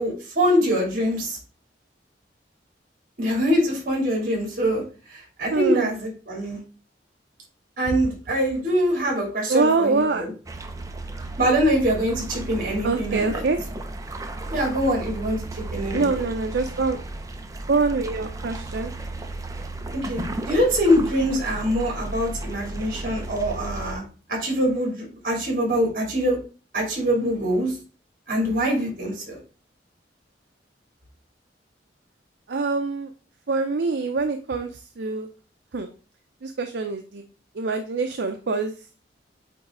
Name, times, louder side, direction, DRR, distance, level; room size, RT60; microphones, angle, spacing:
voice 1, 0.0-1.4 3.2-4.8 5.1-6.6 7.8-10.3 11.4-13.3 14.5-16.1 19.9-24.0 24.3-26.4 26.7-27.8 28.3-29.4, equal, 55° right, -1 dB, 2.9 m, -24 dB
voice 2, 5.5-5.9 9.5-10.3 12.8-13.6 15.9-17.0 17.7-18.9 32.5-33.1 33.5-35.3 35.7-35.9 36.4-37.2 37.5-38.9, right 4 dB, 70° right, 6 dB, 0.6 m, -24 dB
sound 1, 10.5-24.0, right 2 dB, 20° right, 0.6 m, -34 dB
8.2 x 3.1 x 3.7 m, 0.37 s
head